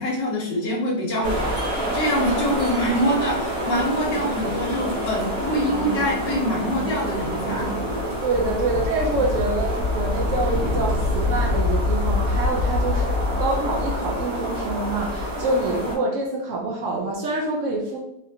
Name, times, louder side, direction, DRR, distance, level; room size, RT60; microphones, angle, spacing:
voice 1, 0.0-7.7, equal, 75° left, -4 dB, 1.4 m, -25 dB
sound 1, 1.2-15.9, left 1 dB, 35° right, 1.3 m, -25 dB
voice 2, 8.2-18.0, right 2 dB, 80° right, -1 dB, 0.6 m, -26 dB
4.0 x 2.6 x 2.6 m, 0.82 s
omnidirectional pair, 2.0 m